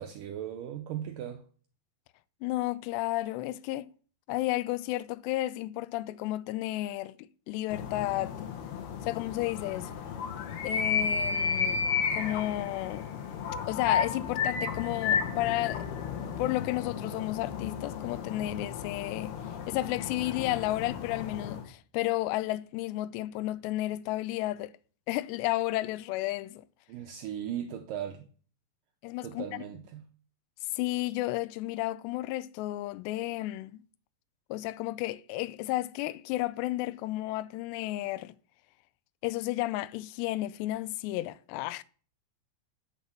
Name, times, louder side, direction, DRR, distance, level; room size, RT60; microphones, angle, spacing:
voice 1, 0.0-1.4 26.9-28.3 29.2-30.0, right 10 dB, 85° right, 1.9 m, -37 dB
voice 2, 2.4-3.9 4.3-8.3 9.1-9.9 10.6-13.1 13.7-16.0 16.4-19.3 19.7-24.7 25.1-26.6 29.0-29.6 30.7-33.8 34.5-38.4 39.2-41.8, left 16 dB, 90° left, 2.8 m, -32 dB
sound 1, 7.7-21.6, left 6 dB, 70° left, 3.3 m, -33 dB
8.8 x 6.2 x 7.1 m
omnidirectional pair, 4.8 m